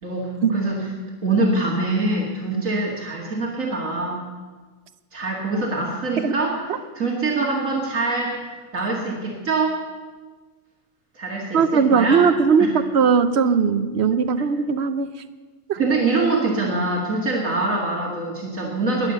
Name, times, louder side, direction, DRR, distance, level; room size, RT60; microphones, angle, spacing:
voice 1, 0.0-0.9 1.2-4.2 5.1-6.7 6.9-8.5 8.7-9.8 11.2-12.3 12.6-12.7 15.8-19.1, right 3 dB, 75° right, -2 dB, 2.6 m, -24 dB
voice 2, 11.5-15.1 15.7-15.8, right 6 dB, 55° right, 12 dB, 0.9 m, -19 dB
20.5 x 7.2 x 8.1 m, 1.4 s
omnidirectional pair, 1.4 m